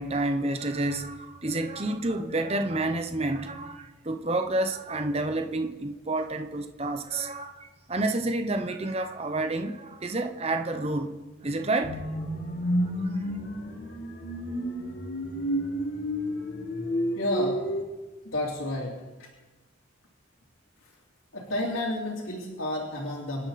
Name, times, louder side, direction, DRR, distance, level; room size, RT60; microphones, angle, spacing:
voice 1, 0.0-12.0 12.8-13.1, right 2 dB, 30° right, 0.9 m, -29 dB
sound 1, 11.8-17.8, equal, 55° left, 2.5 m, -30 dB
voice 2, 17.1-17.6 18.2-19.3 20.8-21.0 21.3-23.5, left 1 dB, 80° left, 3.4 m, -31 dB
26.5 x 11.5 x 4.3 m
head